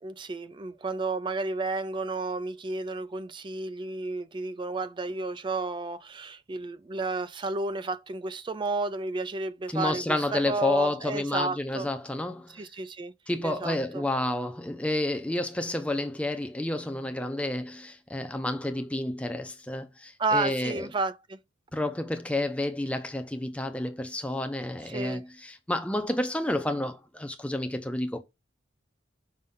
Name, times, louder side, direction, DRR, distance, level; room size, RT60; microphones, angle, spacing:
voice 1, 0.0-11.9 12.5-13.1 13.4-14.0 20.2-21.4 24.8-25.2, right 3 dB, 25° right, 0.3 m, -32 dB
voice 2, 9.7-12.7 13.3-20.9 21.7-28.2, left 1 dB, 5° left, 0.6 m, -30 dB
5.6 x 5.3 x 3.7 m
head